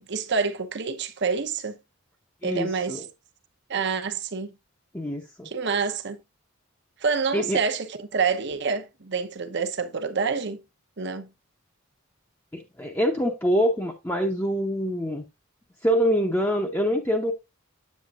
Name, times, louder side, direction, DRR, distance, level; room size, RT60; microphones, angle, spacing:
voice 1, 0.0-1.8 2.4-3.1 3.7-4.5 5.4-6.2 7.0-10.6 11.0-11.3, right 5 dB, 55° right, 0.9 m, -27 dB
voice 2, 2.4-3.0 4.9-5.5 7.3-7.6 12.5-15.2 15.8-17.3, equal, 10° left, 0.8 m, -25 dB
8.5 x 7.4 x 2.4 m
head